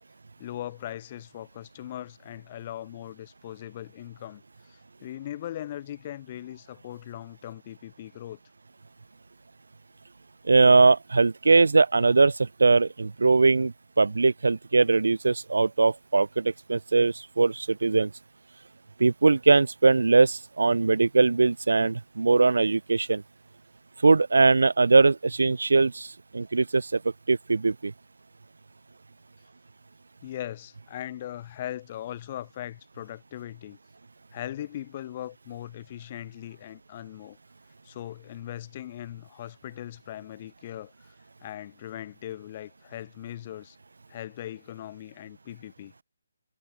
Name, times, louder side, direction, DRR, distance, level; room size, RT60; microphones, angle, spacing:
voice 1, 0.4-4.4 4.7-8.4 30.2-33.8 34.3-37.4 37.8-40.9 41.4-43.8 44.1-45.9, left 12 dB, 25° left, 4.5 m, -39 dB
voice 2, 10.4-18.1 19.0-23.2 24.0-27.0 27.3-27.9, right 3 dB, 90° right, 0.7 m, -21 dB
hypercardioid pair, 170°, 0 cm